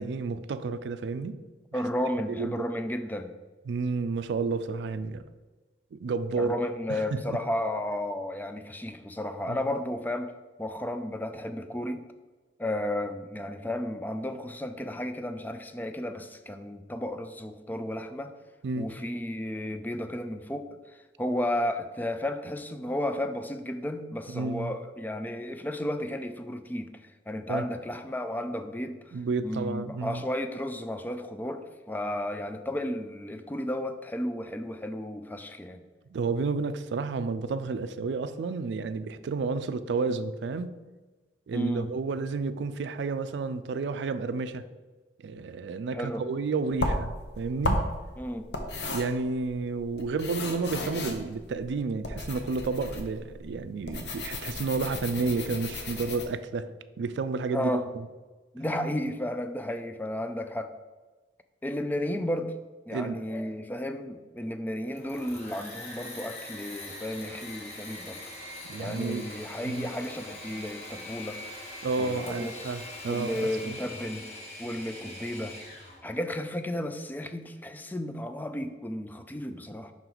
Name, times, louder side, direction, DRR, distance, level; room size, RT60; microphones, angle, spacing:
voice 1, 0.0-1.4 2.3-2.7 3.7-5.2 5.9-6.5 6.9-7.4 9.5-9.6 18.6-18.9 24.3-24.8 27.5-27.6 29.1-30.2 36.1-40.7 41.5-44.6 45.2-47.8 48.9-57.8 62.9-63.2 68.7-69.3 69.6-69.9 71.8-73.8, right 4 dB, 80° right, 0.4 m, -31 dB
voice 2, 1.7-3.3 6.4-10.3 10.6-12.0 12.6-18.3 18.8-35.8 41.5-41.9 45.9-46.2 48.2-48.5 57.5-57.9 58.5-60.7 61.6-62.5 62.9-68.2 68.8-71.4 72.0-74.3 74.6-75.6 76.0-79.9, left 1 dB, 10° left, 0.3 m, -33 dB
sound 1, 46.7-56.2, left 1 dB, 70° left, 0.8 m, -34 dB
Engine / Mechanisms, 64.8-76.0, left 1 dB, 40° left, 1.4 m, -43 dB
5.8 x 4.5 x 3.9 m
head